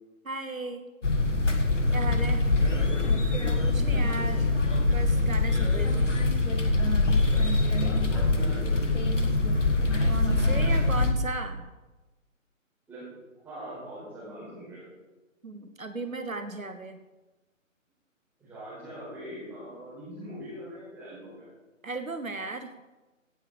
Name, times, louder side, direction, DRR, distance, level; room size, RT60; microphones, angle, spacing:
voice 1, 0.2-0.9 1.9-2.5 3.7-4.5 4.8-6.1 8.3-8.5 10.1-11.7 15.4-17.0 21.8-22.7, right 3 dB, 80° right, 9 dB, 1.3 m, -36 dB
sound 1, 1.0-11.1, left 2 dB, 60° left, 1.7 m, -24 dB
voice 2, 2.6-3.1 3.7-4.5 7.3-8.9 12.9-13.1 13.4-14.9 18.4-21.5, equal, 5° right, -10 dB, 4.6 m, -42 dB
17.0 x 6.8 x 4.9 m, 1.1 s
figure-of-eight pair, 145°, 40 cm